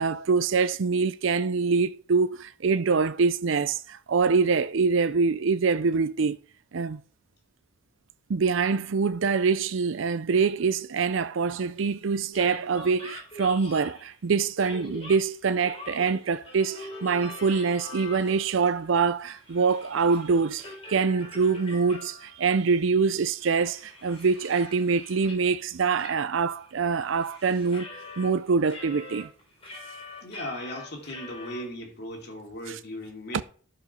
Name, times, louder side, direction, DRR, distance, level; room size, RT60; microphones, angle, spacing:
voice 1, 0.0-6.4 6.7-7.0 8.3-27.9 28.2-29.3 32.7-32.8 33.3-33.4, right 5 dB, 70° right, 0.5 m, -25 dB
sound 1, 12.3-14.2 14.6-18.6 18.9-22.4 22.8-22.9 23.3-25.5 26.0-26.1 26.4-28.3 28.6-31.6, left 2 dB, 30° left, 3.6 m, -44 dB
voice 2, 30.2-33.4, equal, 50° left, 2.7 m, -37 dB
12.0 x 5.1 x 5.6 m
head